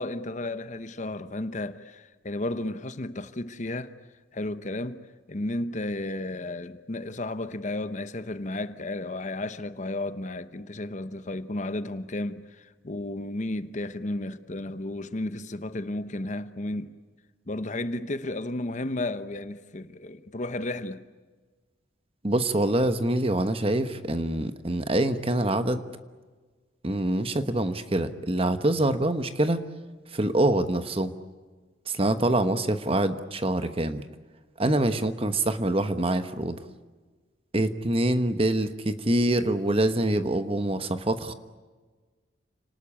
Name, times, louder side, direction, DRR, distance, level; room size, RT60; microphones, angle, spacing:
voice 1, 0.0-3.9 4.3-5.0 5.3-16.9 17.5-21.0, left 2 dB, 40° left, 0.9 m, -33 dB
voice 2, 22.2-25.8 26.8-29.6 30.1-31.1 31.9-34.0 34.6-36.6 37.5-41.3, right 1 dB, 30° right, 1.2 m, -25 dB
29.0 x 19.5 x 8.8 m
head